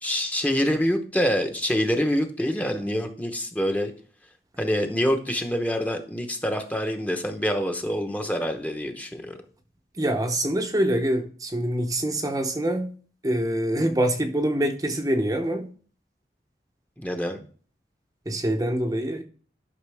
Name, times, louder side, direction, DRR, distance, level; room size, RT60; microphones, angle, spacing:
voice 1, 0.0-3.9 4.6-9.4 17.0-17.5, equal, 10° left, 0.9 m, -26 dB
voice 2, 10.0-12.9 13.2-15.7 18.3-19.2, right 1 dB, 20° right, 0.8 m, -25 dB
11.5 x 5.9 x 3.4 m
head